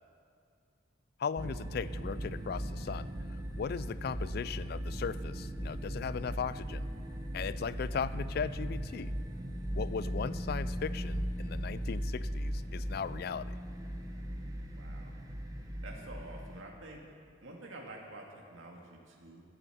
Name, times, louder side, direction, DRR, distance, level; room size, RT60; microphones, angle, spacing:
voice 1, 1.2-3.1 3.5-6.9 7.3-9.1 9.7-13.6, left 6 dB, 50° left, 16 dB, 0.3 m, -37 dB
sound 1, 1.4-16.6, equal, 20° right, 1.1 m, -38 dB
voice 2, 14.7-15.1 15.8-17.0 17.4-19.4, right 2 dB, 75° right, -1 dB, 2.2 m, -48 dB
14.5 x 11.0 x 8.0 m, 2.4 s
head